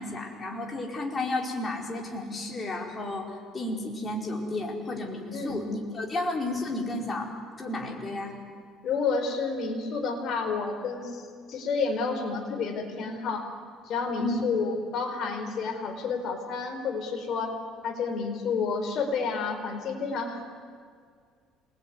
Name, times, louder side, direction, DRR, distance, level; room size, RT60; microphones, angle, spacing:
voice 1, 0.0-3.3 3.5-7.3 7.6-8.3 14.2-14.4, left 2 dB, 20° left, 0 dB, 4.6 m, -32 dB
voice 2, 8.8-11.2 11.5-13.5 13.8-17.6 17.8-20.4, left 4 dB, 50° left, 4 dB, 4.6 m, -30 dB
27.0 x 21.0 x 9.6 m, 2.1 s
cardioid pair, 140°, 0 cm